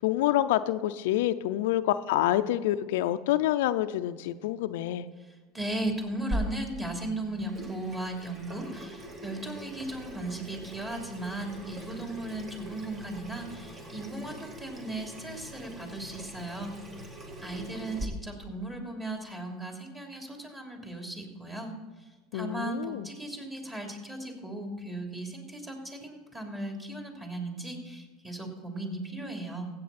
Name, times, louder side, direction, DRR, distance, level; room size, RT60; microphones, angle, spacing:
voice 1, 0.0-5.1 22.3-23.1, left 13 dB, 75° left, 10 dB, 0.4 m, -27 dB
voice 2, 5.5-16.8 17.4-21.7 22.3-29.7, right 2 dB, 15° right, 1 dB, 3.0 m, -37 dB
Water tap faucet / Sink (filling or washing), 6.3-18.1, equal, 30° right, 1.9 m, -41 dB
15.5 x 8.4 x 4.2 m, 1.3 s
hypercardioid pair, 95°, 0 cm